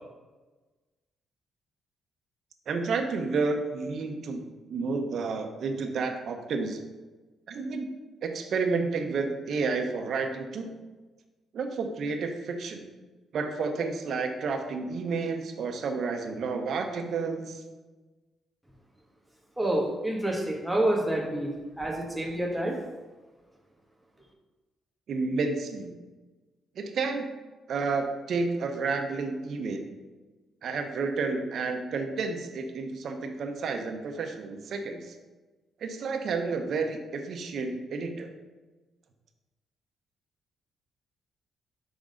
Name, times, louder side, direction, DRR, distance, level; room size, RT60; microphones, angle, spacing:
voice 1, 2.7-4.4 4.7-6.8 7.5-7.9 8.2-10.7 11.5-12.8 13.3-17.6 25.1-25.9 26.7-27.3 27.7-29.9 30.6-35.1 35.8-38.3, right 4 dB, 65° right, 5 dB, 0.7 m, -30 dB
voice 2, 19.6-22.8, right 1 dB, 5° right, -1 dB, 1.2 m, -28 dB
5.3 x 3.7 x 5.1 m, 1.2 s
cardioid pair, 95°, 0 cm